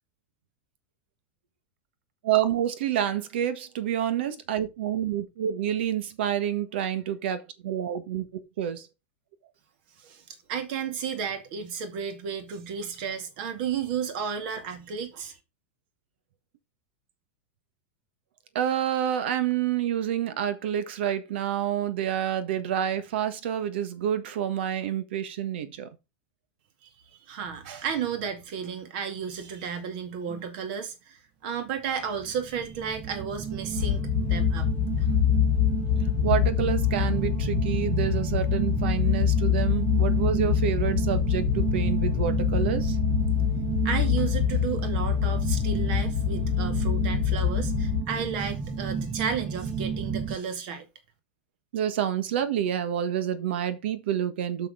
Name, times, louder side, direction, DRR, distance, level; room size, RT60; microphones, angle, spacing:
voice 1, 2.2-8.9 18.5-25.9 36.2-43.0 51.7-54.7, right 10 dB, 70° right, 1.4 m, -28 dB
voice 2, 10.0-15.4 27.3-34.7 35.0-35.1 43.8-50.9, right 7 dB, 55° right, 2.2 m, -33 dB
sound 1, 32.1-50.4, right 6 dB, 15° right, 0.6 m, -32 dB
sound 2, 33.8-48.0, left 10 dB, 85° left, 1.1 m, -25 dB
6.6 x 6.1 x 4.9 m
supercardioid pair, 160°, 6 cm